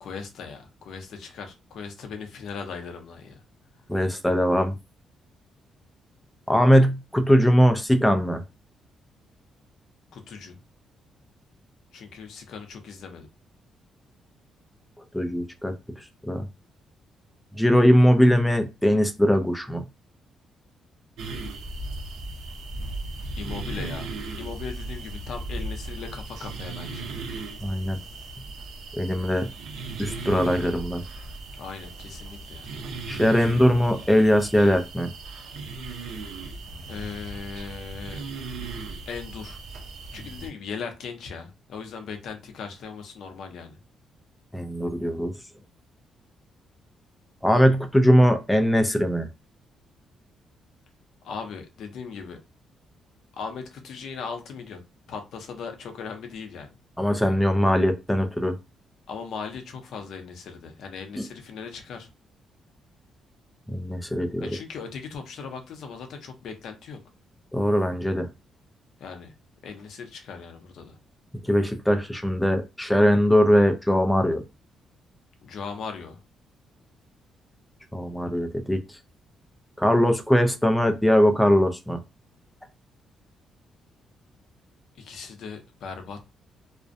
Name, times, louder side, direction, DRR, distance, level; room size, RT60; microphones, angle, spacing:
voice 1, 0.0-3.4 10.1-10.6 11.9-13.3 23.4-24.1 24.4-27.1 31.5-32.7 36.8-38.2 39.1-39.6 40.1-43.8 51.2-52.4 53.3-54.8 55.1-56.7 59.1-62.1 64.4-67.0 69.0-69.3 69.6-71.0 75.4-76.2 85.0-86.3, left 5 dB, 60° left, 0.5 m, -38 dB
voice 2, 3.9-4.7 6.5-8.4 15.1-15.7 16.2-16.5 17.5-19.8 27.6-28.0 28.9-29.5 30.0-31.0 33.1-35.1 44.5-45.3 47.4-49.3 57.0-58.6 61.2-61.3 63.7-64.5 67.5-68.3 71.5-74.4 77.9-79.0 79.8-82.0, equal, ahead, 0.3 m, -21 dB
sound 1, 21.2-40.5, right 2 dB, 80° right, 0.5 m, -37 dB
2.5 x 2.0 x 2.5 m
cardioid pair, 175°, 0 cm